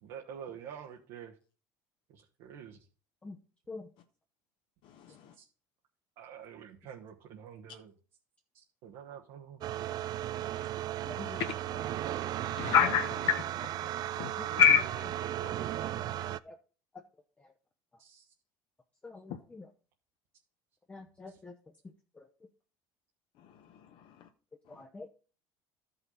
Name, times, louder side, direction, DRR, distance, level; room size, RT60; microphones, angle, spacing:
voice 1, 0.0-1.4 2.1-2.9 5.1-5.4 6.2-7.9 8.5-9.6 11.1-11.3 14.4-14.6 15.2-15.8 18.0-18.3, right 8 dB, 75° right, 0 dB, 1.3 m, -48 dB
voice 2, 4.8-5.4 11.0-11.5 12.5-15.1 15.4-16.0 19.3-19.4 23.4-24.3 24.7-24.8, left 7 dB, 60° left, 6 dB, 0.9 m, -30 dB
sound 1, 9.6-16.4, right 12 dB, 45° right, 0.4 m, -35 dB
voice 3, 11.0-11.4 12.0-12.1 12.4-12.6 14.4-14.5 16.4-16.6 16.9-17.0 17.4-17.5 19.0-19.7 20.9-22.3 24.7-25.1, left 3 dB, 15° left, 4 dB, 0.7 m, -47 dB
12.5 x 5.7 x 3.9 m, 0.39 s
cardioid pair, 125°, 9 cm